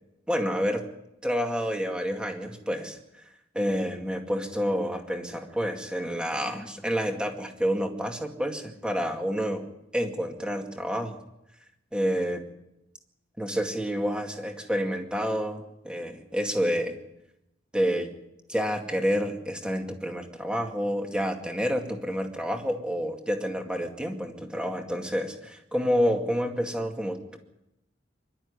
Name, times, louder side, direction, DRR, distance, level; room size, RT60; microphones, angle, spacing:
voice 1, 0.3-0.9 1.2-3.0 3.5-9.6 9.9-11.2 11.9-12.4 13.4-17.0 17.7-18.1 18.5-27.4, equal, 5° right, 3 dB, 2.2 m, -29 dB
24.0 x 12.5 x 9.8 m, 0.89 s
head